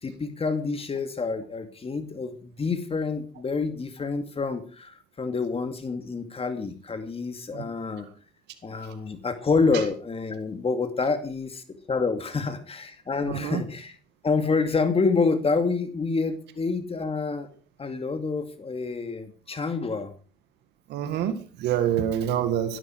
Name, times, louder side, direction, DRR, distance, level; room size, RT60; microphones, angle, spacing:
voice 1, 0.0-8.1 8.6-14.0 14.2-17.5 17.8-20.1, left 4 dB, 35° left, 7 dB, 2.5 m, -28 dB
voice 2, 13.3-13.6 20.9-22.8, right 10 dB, 90° right, 9 dB, 1.9 m, -26 dB
16.0 x 12.5 x 4.7 m, 0.38 s
cardioid pair, 85°, 17 cm